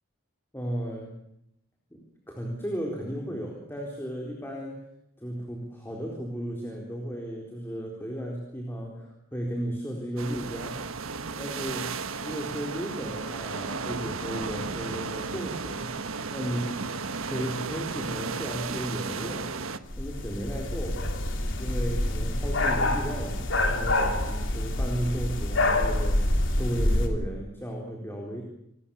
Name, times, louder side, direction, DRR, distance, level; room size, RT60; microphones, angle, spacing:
voice 1, 0.5-1.2 1.9-2.0 2.3-4.8 5.2-10.8 11.4-15.9 16.3-16.6 17.3-19.6 20.0-21.0 21.6-28.4, equal, 10° left, 0 dB, 4.2 m, -34 dB
sound 1, 10.2-19.8, right 4 dB, 85° right, 1.4 m, -34 dB
sound 2, 19.9-27.1, left 1 dB, 65° left, 3.4 m, -26 dB
28.0 x 20.5 x 7.2 m, 0.77 s
head